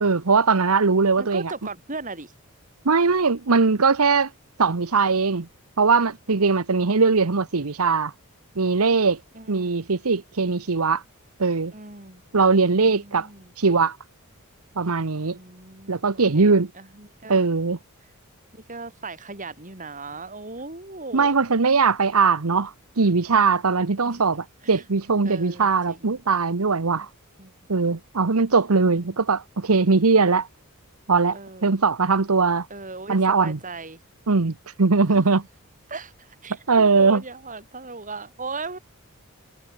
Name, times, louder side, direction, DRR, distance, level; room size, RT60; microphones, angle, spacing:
voice 1, 0.0-1.5 2.8-4.3 4.6-5.5 5.8-8.1 8.6-9.2 9.5-11.0 11.4-11.7 12.3-13.3 13.6-14.0 14.8-15.4 15.9-16.7 17.3-17.8 21.1-27.1 27.7-30.5 31.1-32.7 33.1-33.6 34.3-35.4 36.7-37.2, right 4 dB, 75° right, 1.0 m, -20 dB
voice 2, 1.2-2.3 6.8-7.0 9.3-9.8 11.7-12.2 12.6-13.5 15.2-17.5 18.5-21.3 24.1-24.2 24.6-24.8 25.3-26.2 27.0-27.1 27.4-27.5 28.8-29.2 31.3-31.7 32.7-34.0 35.1-35.3 35.9-38.8, right 3 dB, 35° right, 5.2 m, -38 dB
head